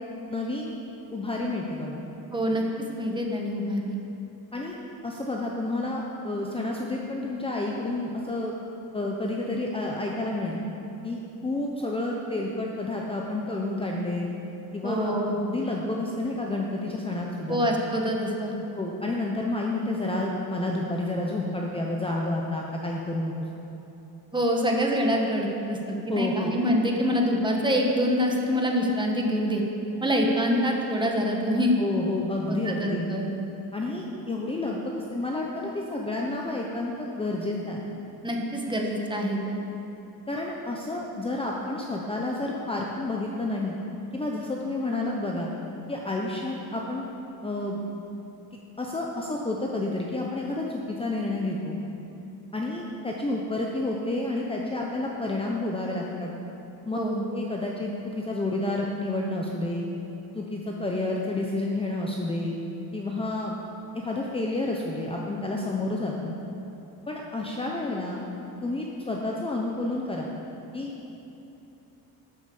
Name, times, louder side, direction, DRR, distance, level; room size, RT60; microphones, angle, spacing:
voice 1, 0.3-0.8 1.1-2.0 4.5-4.8 5.0-8.5 8.9-10.6 11.0-14.3 14.7-17.6 18.8-23.3 26.1-26.5 31.8-33.1 33.7-37.8 40.3-43.7 44.1-45.5 45.9-47.0 47.4-47.8 48.8-51.8 52.5-56.3 56.9-57.0 57.3-59.8 60.3-62.6 62.9-63.6 63.9-66.3 67.1-68.2 68.6-70.3 70.7-70.9, left 2 dB, 15° left, -2 dB, 0.8 m, -30 dB
voice 2, 2.3-2.6 3.0-4.0 14.8-15.4 17.5-18.6 24.3-29.6 30.0-31.7 32.5-33.3 38.2-39.6 56.9-57.2, equal, 10° right, 0 dB, 1.4 m, -25 dB
12.0 x 8.5 x 7.0 m, 2.9 s
cardioid pair, 160°, 37 cm